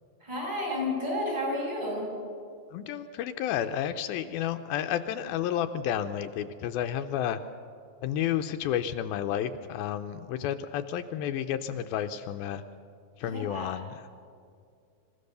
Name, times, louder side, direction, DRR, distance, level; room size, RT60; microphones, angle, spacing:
voice 1, 0.2-2.1 13.2-13.7, left 1 dB, 25° right, -5 dB, 7.4 m, -31 dB
voice 2, 2.7-7.4 8.0-12.6 13.2-14.1, left 10 dB, 80° left, 7 dB, 2.4 m, -31 dB
26.5 x 15.5 x 6.7 m, 2.3 s
omnidirectional pair, 4.3 m